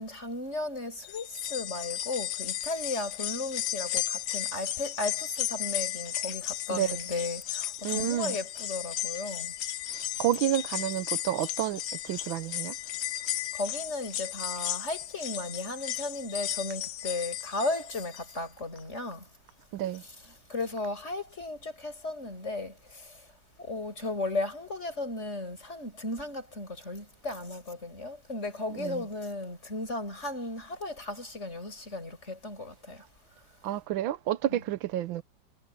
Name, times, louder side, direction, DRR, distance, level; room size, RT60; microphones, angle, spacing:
voice 1, 0.0-9.5 13.5-19.3 20.0-20.1 20.5-23.3 23.6-33.1 34.5-34.6, left 2 dB, 35° left, 6.7 m, -35 dB
sound 1, 1.0-18.4 18.8-18.9 20.0-20.1, left 12 dB, 75° left, 1.5 m, -35 dB
voice 2, 7.8-8.4 9.9-12.7 19.7-20.0 28.7-29.0 33.6-35.2, right 12 dB, 90° right, 1.5 m, -30 dB
omnidirectional pair, 2.1 m